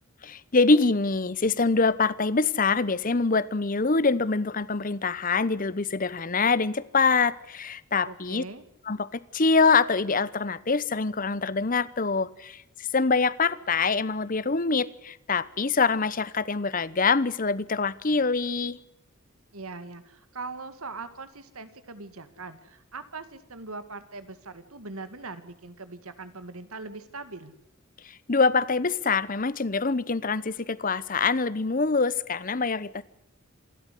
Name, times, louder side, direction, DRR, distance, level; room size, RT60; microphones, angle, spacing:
voice 1, 0.2-8.4 8.9-18.8 28.0-33.0, left 4 dB, 40° left, 19 dB, 0.9 m, -25 dB
voice 2, 8.0-8.6 19.5-27.5, right 3 dB, 90° right, 11 dB, 2.2 m, -41 dB
27.5 x 12.5 x 9.9 m, 0.88 s
head